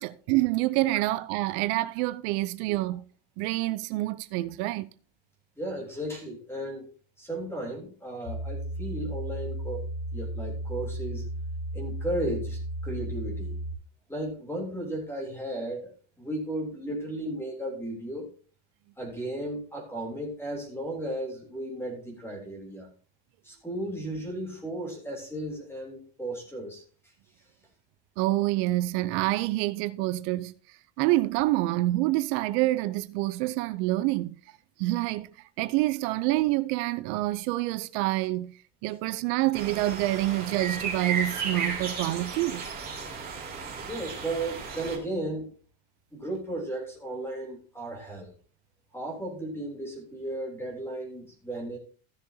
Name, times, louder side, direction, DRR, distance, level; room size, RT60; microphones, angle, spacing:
voice 1, 0.0-3.0 3.4-4.9 28.2-30.5 31.0-34.4 34.8-35.3 35.6-38.5 38.8-42.6, right 18 dB, 85° right, 0.8 m, -27 dB
voice 2, 5.6-6.9 7.2-9.8 10.1-11.3 11.7-13.6 14.1-15.9 16.2-18.3 19.0-22.9 23.4-26.8 43.8-45.5 46.1-48.3 48.9-51.8, right 1 dB, 5° left, 3.3 m, -35 dB
sound 1, 8.3-13.8, right 1 dB, 75° left, 5.2 m, -34 dB
sound 2, 39.5-45.0, right 5 dB, 20° right, 2.9 m, -34 dB
15.5 x 6.7 x 2.8 m
cardioid pair, 175°, 47 cm